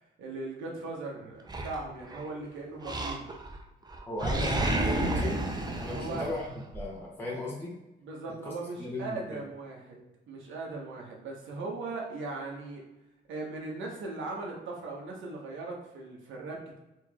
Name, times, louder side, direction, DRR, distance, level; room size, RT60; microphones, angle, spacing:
voice 1, 0.2-3.3 5.9-6.2 8.0-10.0 10.3-12.8 13.3-16.8, right 3 dB, 75° right, -1 dB, 1.1 m, -39 dB
Animal, 1.5-2.3 2.8-3.6 3.9-6.8, right 2 dB, 20° right, 0.5 m, -31 dB
voice 2, 4.1-5.4 5.8-7.7 8.4-8.5 8.8-9.4, left 2 dB, 10° left, -4 dB, 0.8 m, -36 dB
4.4 x 3.0 x 2.3 m, 0.98 s
cardioid pair, 90°, 20 cm